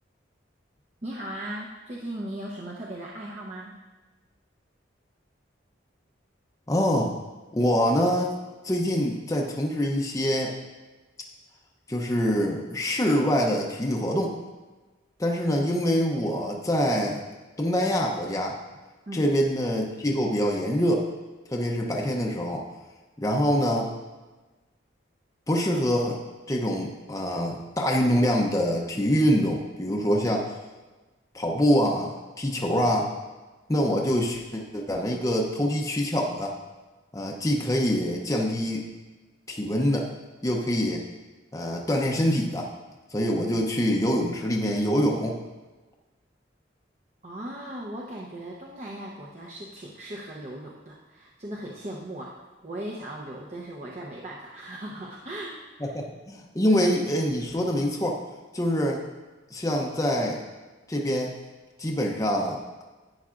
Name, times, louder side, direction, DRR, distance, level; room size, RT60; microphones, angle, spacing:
voice 1, 1.0-3.8 19.1-19.3 47.2-56.0, right 1 dB, 35° right, -3 dB, 0.8 m, -38 dB
voice 2, 6.7-7.1 7.5-8.3 8.6-10.6 11.9-14.4 15.2-17.2 17.6-18.6 19.1-21.0 21.5-22.7 23.2-23.9 25.5-26.2 26.5-30.5 31.3-33.1 33.7-36.5 37.1-38.9 39.5-40.1 40.4-41.0 41.5-42.7 43.1-45.4 55.9-58.2 58.5-59.0 59.5-60.4 60.9-61.3 61.8-62.8, equal, 15° left, 0 dB, 0.6 m, -25 dB
11.5 x 9.4 x 2.5 m, 1.2 s
head